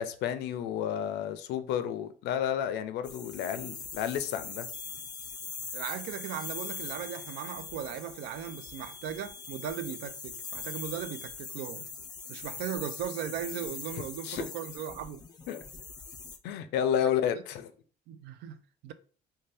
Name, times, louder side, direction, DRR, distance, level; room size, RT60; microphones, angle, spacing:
voice 1, 0.0-4.7 14.2-14.5 15.5-15.6 16.4-17.7, left 9 dB, 80° left, 0.4 m, -31 dB
sound 1, 3.0-16.4, left 5 dB, 25° left, 0.4 m, -42 dB
sound 2, 4.7-11.3, left 3 dB, 40° right, 0.6 m, -54 dB
voice 2, 5.7-11.9 12.3-15.2 17.0-17.1 18.1-18.9, right 9 dB, 80° right, 0.4 m, -38 dB
2.6 x 2.2 x 3.3 m
cardioid pair, 110°, 17 cm